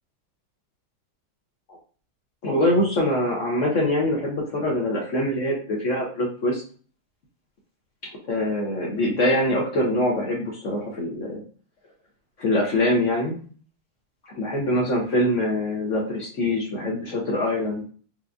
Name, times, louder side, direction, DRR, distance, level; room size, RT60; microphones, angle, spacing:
voice 1, 2.4-6.6 8.2-11.4 12.4-13.4 14.3-17.8, left 1 dB, 60° left, -2 dB, 0.8 m, -24 dB
4.4 x 2.5 x 2.4 m, 0.42 s
omnidirectional pair, 2.1 m